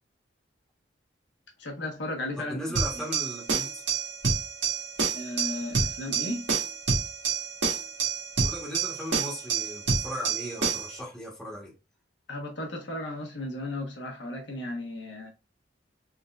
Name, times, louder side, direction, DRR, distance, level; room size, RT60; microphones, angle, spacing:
voice 1, 1.6-3.0 5.1-6.5 12.3-15.3, left 1 dB, 75° left, 1.2 m, -35 dB
voice 2, 2.4-3.8 8.4-11.7, equal, 5° left, 1.2 m, -37 dB
sound 1, 2.8-11.0, right 5 dB, 80° right, 1.6 m, -28 dB
3.8 x 3.6 x 2.4 m
head